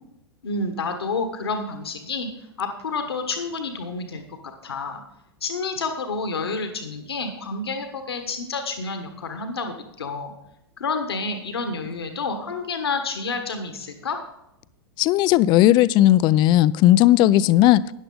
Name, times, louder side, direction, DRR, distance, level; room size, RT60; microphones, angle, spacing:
voice 1, 0.4-2.3 2.6-4.4 4.6-5.0 5.4-10.3 10.8-14.2, left 4 dB, 80° left, 1.3 m, -29 dB
voice 2, 15.0-17.8, left 14 dB, 35° left, 0.4 m, -16 dB
13.5 x 9.9 x 3.9 m
figure-of-eight pair, 95°, 13 cm